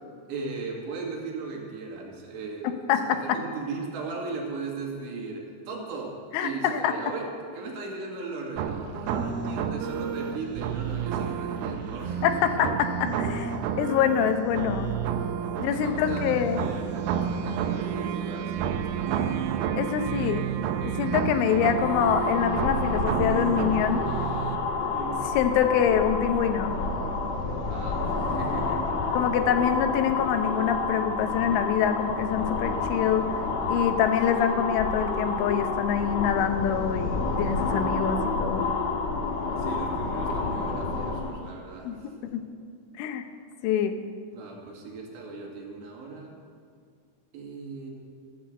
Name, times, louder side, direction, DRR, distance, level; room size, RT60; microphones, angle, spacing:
voice 1, 0.3-12.3 15.7-19.4 24.9-25.2 27.7-28.9 34.3-34.6 39.6-42.1 44.3-46.3 47.3-47.9, right 4 dB, 70° right, -1 dB, 4.5 m, -37 dB
voice 2, 6.3-6.9 12.2-14.9 15.6-16.7 19.8-20.4 20.8-24.1 25.4-26.8 29.2-33.3 33.7-38.7 41.8-42.0 42.3-42.4 43.0-43.2 43.6-44.0, left 8 dB, 90° left, 7 dB, 3.5 m, -25 dB
sound 1, 8.6-24.6, right 8 dB, 85° right, 2.1 m, -30 dB
sound 2, 21.5-41.4, left 3 dB, 65° left, 1.8 m, -29 dB
16.0 x 9.8 x 7.8 m, 2.2 s
omnidirectional pair, 5.4 m